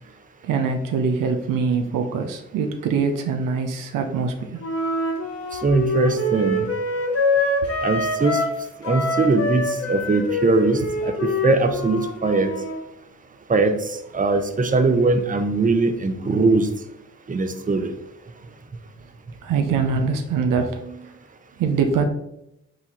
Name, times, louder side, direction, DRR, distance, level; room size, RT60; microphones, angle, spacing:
voice 1, 0.4-4.6 19.4-21.1 21.6-22.1, right 5 dB, 85° right, 5 dB, 0.6 m, -23 dB
Wind instrument woodwind instrument, 4.6-8.6 8.8-12.8, left 1 dB, 45° left, 1.2 m, -25 dB
voice 2, 5.5-6.7 7.8-8.4 8.8-12.5 13.5-16.7 17.3-17.9, right 3 dB, 25° right, 7 dB, 0.7 m, -21 dB
4.7 x 3.9 x 2.9 m, 0.82 s
supercardioid pair, 45°, 32 cm